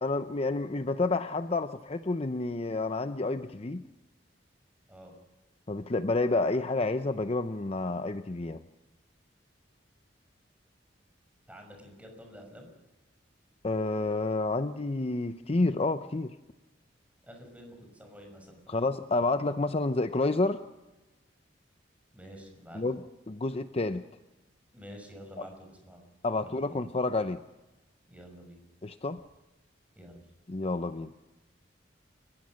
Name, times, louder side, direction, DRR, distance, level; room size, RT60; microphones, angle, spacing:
voice 1, 0.0-3.8 5.7-8.6 13.6-16.3 18.7-20.6 22.7-24.0 25.4-25.5 26.2-27.4 28.8-29.2 30.5-31.1, left 2 dB, 35° left, 10 dB, 0.7 m, -29 dB
voice 2, 11.5-12.7 17.2-18.8 22.1-22.8 24.7-26.0 26.3-26.8 28.1-28.6 30.0-30.2, equal, 10° right, 3 dB, 6.0 m, -49 dB
29.5 x 15.5 x 6.4 m, 1.1 s
head